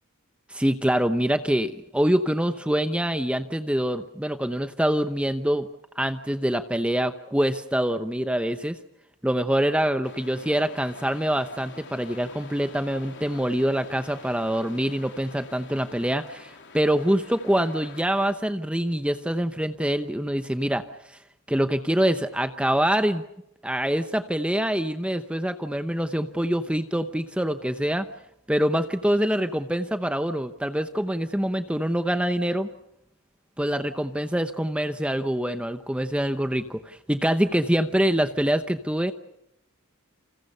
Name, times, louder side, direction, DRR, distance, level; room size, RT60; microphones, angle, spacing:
voice 1, 0.5-5.7 6.0-8.8 9.2-21.2 21.5-23.2 23.6-28.1 28.5-32.7 33.6-39.1, equal, 5° right, 8 dB, 0.9 m, -25 dB
sound 1, 10.0-18.3, left 4 dB, 55° left, 3.4 m, -47 dB
29.5 x 27.5 x 5.5 m, 0.80 s
head